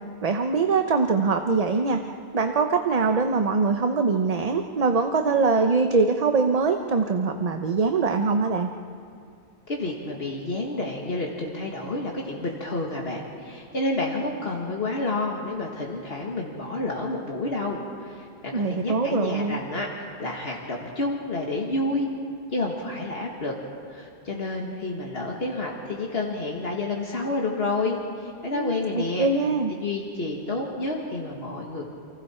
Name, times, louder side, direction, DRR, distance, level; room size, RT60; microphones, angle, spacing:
voice 1, 0.2-2.0 2.3-8.7 18.5-19.6 28.5-29.7, right 4 dB, 40° right, 5 dB, 0.8 m, -23 dB
voice 2, 9.7-22.1 22.5-23.5 23.9-29.3 29.7-31.8, left 2 dB, 65° left, -1 dB, 2.0 m, -29 dB
29.0 x 24.5 x 4.4 m, 2.4 s
omnidirectional pair, 1.1 m